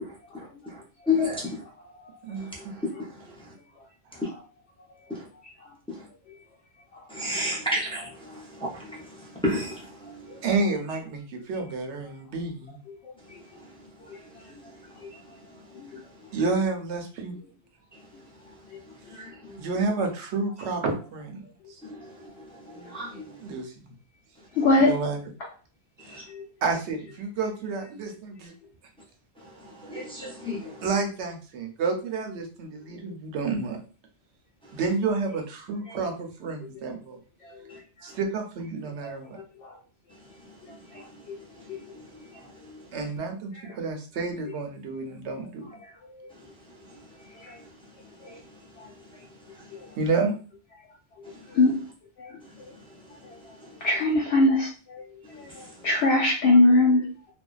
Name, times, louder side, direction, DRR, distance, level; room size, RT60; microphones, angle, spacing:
voice 1, 0.3-1.6 2.6-2.7 5.1-5.3 5.9-6.0 7.1-9.0 9.4-10.2 19.1-19.6 21.9-22.0 22.7-23.2 26.1-26.2 29.6-30.8, left 2 dB, 5° left, -5 dB, 0.4 m, -31 dB
voice 2, 10.4-12.8 16.3-17.3 19.6-21.4 23.4-23.7 24.8-25.3 26.0-26.2 26.6-28.5 30.8-33.8 34.7-37.2 38.0-39.4 42.9-45.7 50.0-50.3, right 4 dB, 85° right, 3 dB, 0.9 m, -30 dB
voice 3, 24.6-24.9 26.3-26.4 51.5-51.7 52.2-52.3 53.8-54.7 55.4-55.5 55.8-57.0, left 2 dB, 75° left, -2 dB, 0.8 m, -19 dB
2.5 x 2.1 x 2.3 m, 0.36 s
omnidirectional pair, 1.1 m